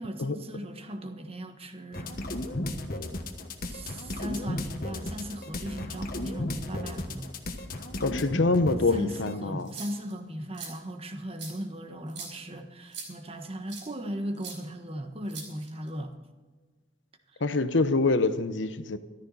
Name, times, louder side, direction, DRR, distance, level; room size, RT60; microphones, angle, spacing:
voice 1, 0.0-2.2 3.7-7.3 8.9-16.1 17.3-17.4, equal, 30° right, 6 dB, 1.3 m, -38 dB
sound 1, 1.9-9.3, left 1 dB, 50° left, 1.4 m, -34 dB
voice 2, 8.0-9.7 17.4-19.0, left 3 dB, 80° left, 11 dB, 0.9 m, -25 dB
sound 2, 9.6-10.1 10.5-10.7 11.4-11.5 12.1-12.3 12.9-13.1 13.7-13.9 14.4-14.6 15.3-15.9, right 5 dB, 75° right, 5.1 m, -41 dB
14.0 x 13.0 x 4.2 m, 1.4 s
head